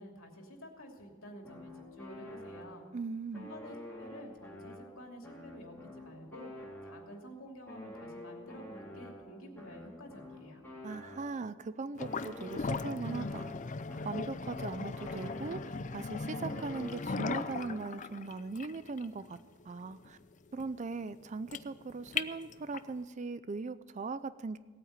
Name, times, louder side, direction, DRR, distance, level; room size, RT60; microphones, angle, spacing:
voice 1, 0.0-2.8 3.3-6.5 6.8-10.6, equal, 85° left, 1 dB, 2.8 m, -50 dB
sound 1, 1.4-3.0 3.3-7.3 7.7-11.6 12.0-15.9 16.3-18.1, equal, 10° left, 3.8 m, -49 dB
voice 2, 2.9-3.5 10.8-13.5 14.0-19.4 19.7-20.2 20.5-24.6, right 4 dB, 35° right, 15 dB, 0.4 m, -39 dB
sound 2, 12.0-23.0, left 4 dB, 40° left, 0.5 m, -39 dB
18.0 x 8.9 x 8.0 m, 1.3 s
head